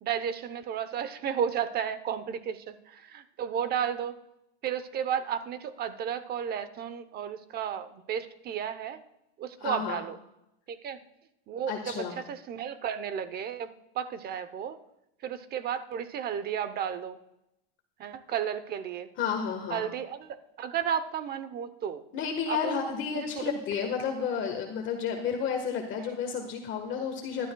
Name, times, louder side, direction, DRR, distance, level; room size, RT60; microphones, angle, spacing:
voice 1, 0.0-4.1 4.6-9.0 9.4-10.2 10.7-11.0 11.5-13.7 13.9-14.8 15.2-17.2 18.0-19.1 19.7-22.0 22.5-22.8 23.1-23.5 23.8-23.9 26.0-26.1, right 8 dB, 30° right, 13 dB, 0.8 m, -33 dB
voice 2, 9.6-10.0 11.7-12.2 19.2-19.8 22.1-27.5, left 6 dB, 40° left, 3 dB, 1.4 m, -31 dB
20.0 x 12.0 x 2.3 m, 0.86 s
supercardioid pair, 145°, 31 cm